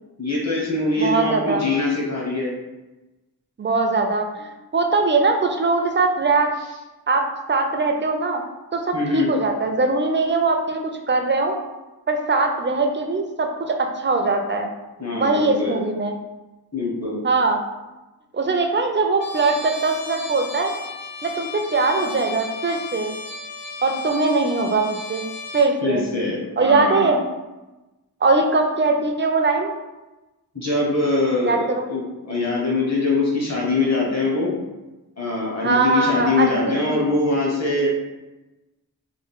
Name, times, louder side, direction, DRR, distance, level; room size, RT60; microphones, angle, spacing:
voice 1, 0.2-2.5 8.9-9.3 15.0-15.8 16.7-17.2 25.8-27.1 30.5-34.5 35.2-37.9, left 3 dB, 40° left, -4 dB, 1.1 m, -23 dB
voice 2, 1.0-1.6 3.6-6.5 7.1-8.4 8.7-11.6 12.1-14.7 15.1-16.1 17.2-17.6 18.3-20.7 21.2-23.2 23.8-25.3 25.5-26.0 26.6-27.2 28.2-29.7 31.5-31.8 35.6-37.0, right 3 dB, 30° right, 4 dB, 0.4 m, -21 dB
Trumpet, 19.2-25.7, left 4 dB, 85° left, 0.6 m, -35 dB
3.6 x 2.2 x 3.6 m, 1.1 s
wide cardioid pair, 95°, 41 cm